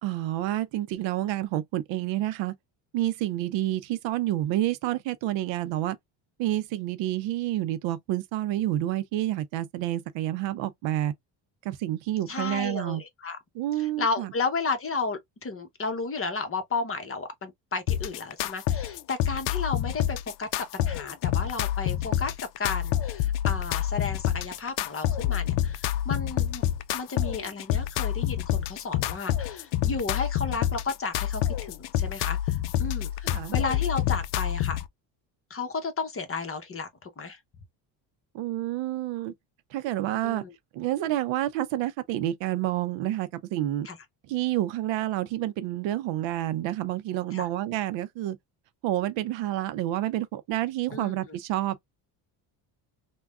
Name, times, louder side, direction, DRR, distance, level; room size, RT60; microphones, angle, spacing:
voice 1, 0.0-2.5 2.9-6.0 6.4-11.1 11.6-13.0 13.5-14.3 33.2-33.6 38.3-39.3 39.7-40.4 40.7-43.9 44.3-48.4 48.8-51.8, right 14 dB, 65° right, 0.6 m, -29 dB
voice 2, 12.3-13.4 13.8-26.6 26.9-34.8 35.5-37.4 40.2-40.5 43.8-44.0 47.3-47.5 50.9-51.1, left 4 dB, 25° left, 0.9 m, -33 dB
sound 1, 17.9-34.9, left 12 dB, 65° left, 0.5 m, -28 dB
3.3 x 2.3 x 2.3 m
supercardioid pair, 85°, 48 cm